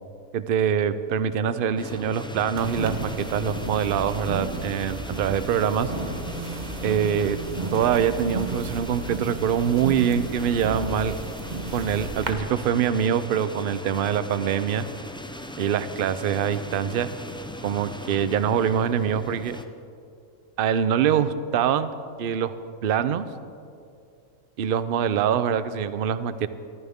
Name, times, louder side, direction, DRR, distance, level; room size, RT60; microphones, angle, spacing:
voice 1, 0.3-5.9 6.8-7.4 7.7-11.2 11.7-14.9 15.6-17.1 17.6-19.6 20.6-21.9 22.2-22.6 22.8-23.3 24.6-26.5, right 8 dB, 55° right, 13 dB, 0.7 m, -24 dB
sound 1, 1.8-19.6, left 1 dB, 5° left, 0.4 m, -39 dB
sound 2, 2.6-12.3, right 2 dB, 35° right, 1.0 m, -33 dB
21.5 x 14.5 x 3.6 m, 2.5 s
omnidirectional pair, 1.4 m